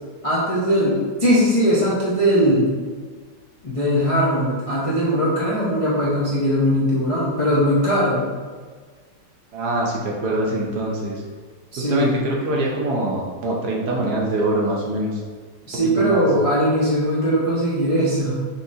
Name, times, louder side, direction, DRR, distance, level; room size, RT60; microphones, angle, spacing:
voice 1, 0.2-2.8 3.6-8.3 11.7-12.2 15.7-18.4, equal, 40° left, -9 dB, 0.4 m, -20 dB
voice 2, 9.5-11.2 11.8-15.2 16.0-16.3, right 1 dB, 65° right, -3 dB, 1.1 m, -24 dB
5.6 x 3.3 x 2.7 m, 1.5 s
omnidirectional pair, 2.1 m